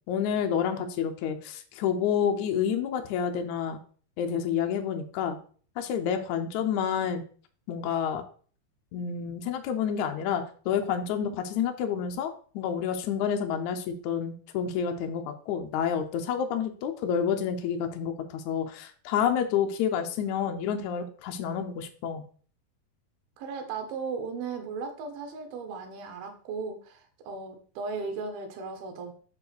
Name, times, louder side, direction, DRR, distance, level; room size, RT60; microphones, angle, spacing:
voice 1, 0.1-3.8 4.2-5.4 5.8-7.2 7.7-8.2 8.9-22.2, left 8 dB, 80° left, 5 dB, 1.7 m, -29 dB
voice 2, 23.4-29.1, right 4 dB, 75° right, 5 dB, 3.1 m, -36 dB
6.2 x 4.8 x 6.6 m, 0.44 s
omnidirectional pair, 4.4 m